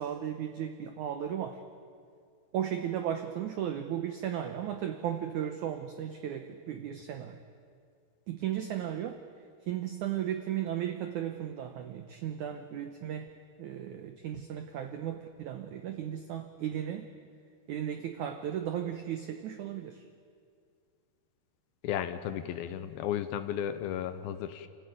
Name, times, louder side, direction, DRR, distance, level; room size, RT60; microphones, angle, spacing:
voice 1, 0.0-1.6 2.5-7.4 8.3-9.2 9.7-13.3 13.6-17.1 17.7-20.0, right 10 dB, 85° right, 7 dB, 1.7 m, -35 dB
voice 2, 21.8-24.7, left 10 dB, 75° left, 11 dB, 2.4 m, -34 dB
28.5 x 14.5 x 9.1 m, 2.2 s
omnidirectional pair, 4.8 m